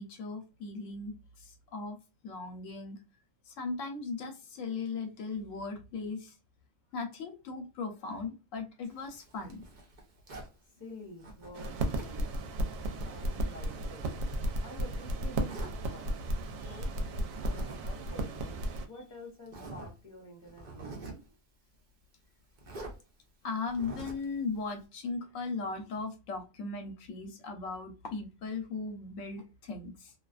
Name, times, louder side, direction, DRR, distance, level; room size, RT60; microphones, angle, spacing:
voice 1, 0.0-2.0 2.2-3.0 3.5-6.4 6.9-9.6 16.6-16.8 23.4-30.1, left 4 dB, 80° left, 4 dB, 1.0 m, -38 dB
Zipper (clothing), 8.8-10.6 11.2-12.2 12.6-14.9 15.5-15.8 17.2-17.8 18.1-18.2 18.9-19.0 19.5-19.9 20.4-21.3 22.6-23.0 23.7-24.3, right 2 dB, 45° right, 0.7 m, -46 dB
voice 2, 10.8-12.3 13.0-14.1 14.6-16.2 16.5-21.2, left 1 dB, 25° left, -1 dB, 0.9 m, -49 dB
sound 1, 11.5-18.9, right 1 dB, 80° right, 1.0 m, -34 dB
2.5 x 2.3 x 2.3 m, 0.30 s
omnidirectional pair, 1.4 m